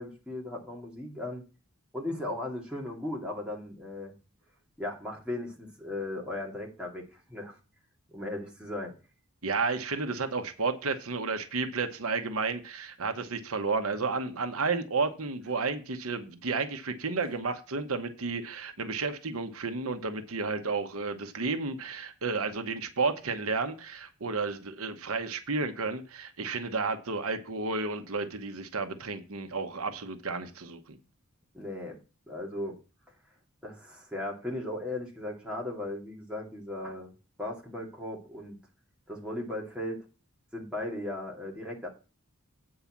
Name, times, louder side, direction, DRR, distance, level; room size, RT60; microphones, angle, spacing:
voice 1, 0.0-1.4 1.9-4.1 4.8-7.6 8.1-9.0 31.5-32.0 32.3-32.8 33.6-37.1 37.4-38.6 39.1-40.0 40.5-41.9, left 1 dB, 5° right, 2.2 m, -37 dB
voice 2, 9.4-31.0, right 4 dB, 75° right, 1.0 m, -32 dB
8.7 x 4.8 x 7.1 m
head